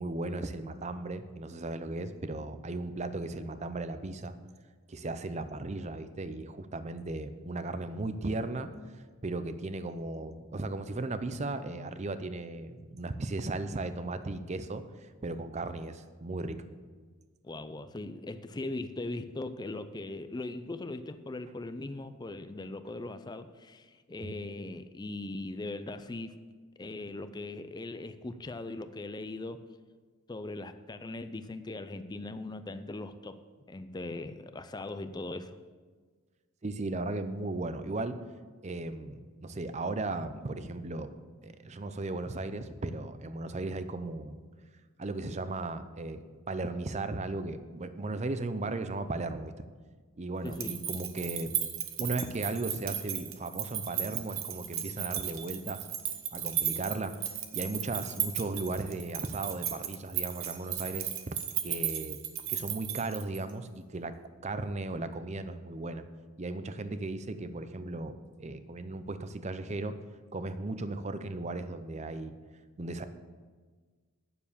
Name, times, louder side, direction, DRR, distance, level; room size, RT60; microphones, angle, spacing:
voice 1, 0.0-4.3 4.9-8.7 9.2-16.6 24.2-24.4 36.6-38.2 38.6-41.1 41.4-44.4 45.0-49.5 50.2-51.5 52.0-55.8 56.3-57.1 57.5-62.2 62.5-64.2 64.4-66.0 66.4-70.0 70.3-72.3 72.8-73.1, right 2 dB, 30° right, 11 dB, 0.6 m, -36 dB
voice 2, 17.4-26.3 26.8-29.6 30.3-33.4 33.7-35.6 50.4-50.7, left 2 dB, 20° left, 10 dB, 0.4 m, -39 dB
sound 1, 50.5-63.5, right 10 dB, 65° right, 0.9 m, -35 dB
9.5 x 7.0 x 7.0 m, 1.5 s
head